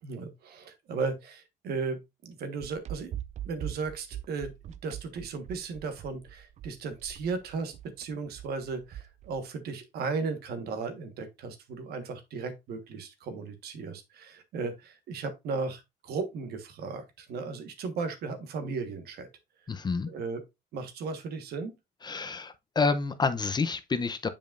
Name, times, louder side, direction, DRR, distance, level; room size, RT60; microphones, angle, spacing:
voice 1, 0.0-3.1 3.4-4.5 4.8-19.3 20.0-20.4 20.7-21.7, right 4 dB, 70° right, 1.3 m, -36 dB
sound 1, 2.6-9.4, right 11 dB, 45° right, 0.4 m, -42 dB
voice 2, 19.7-20.1 22.0-24.3, left 4 dB, 25° left, 0.6 m, -28 dB
7.3 x 5.2 x 2.5 m
cardioid pair, 110°, 17 cm